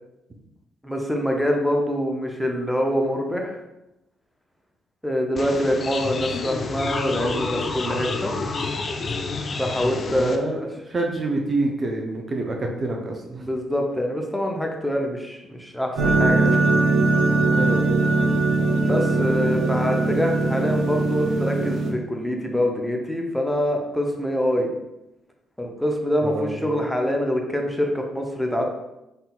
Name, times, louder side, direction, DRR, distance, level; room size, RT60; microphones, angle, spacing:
voice 1, 0.8-3.6 5.0-8.3 9.6-10.7 13.3-16.6 18.8-24.7 25.6-28.6, equal, 5° left, 1 dB, 0.8 m, -25 dB
sound 1, 5.4-10.4, left 3 dB, 45° left, 0.4 m, -29 dB
voice 2, 9.7-13.5 17.5-18.2 26.2-26.7, right 2 dB, 40° right, 1 dB, 0.7 m, -28 dB
sound 2, 15.9-21.9, right 3 dB, 70° right, 0.9 m, -21 dB
4.0 x 3.7 x 2.4 m, 0.91 s
figure-of-eight pair, 40°, 0 cm